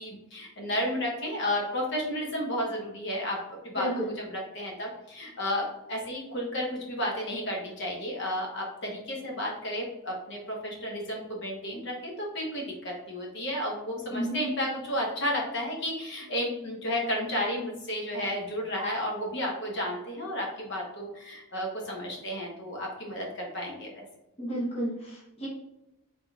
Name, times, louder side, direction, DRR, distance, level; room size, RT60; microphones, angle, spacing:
voice 1, 0.0-3.4 3.6-3.9 4.2-24.0, left 1 dB, 55° left, -1 dB, 1.0 m, -32 dB
voice 2, 3.8-4.1 14.1-14.4 24.4-25.5, equal, 25° left, -5 dB, 0.8 m, -32 dB
3.9 x 3.6 x 2.3 m, 0.92 s
head